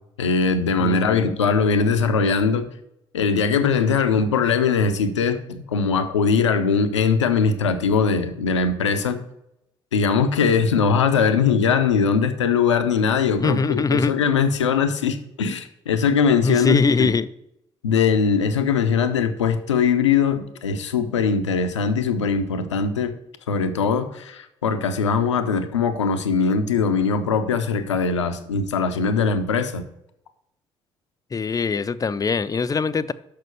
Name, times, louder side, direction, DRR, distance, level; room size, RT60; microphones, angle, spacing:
voice 1, 0.2-2.7 3.1-9.2 9.9-17.1 17.8-23.1 23.5-29.8, left 5 dB, 85° left, 9 dB, 0.6 m, -21 dB
voice 2, 0.8-1.4 13.4-14.1 16.4-17.3 31.3-33.1, left 4 dB, 25° left, 14 dB, 0.5 m, -22 dB
6.6 x 6.0 x 6.8 m, 0.82 s
figure-of-eight pair, 50°, 15 cm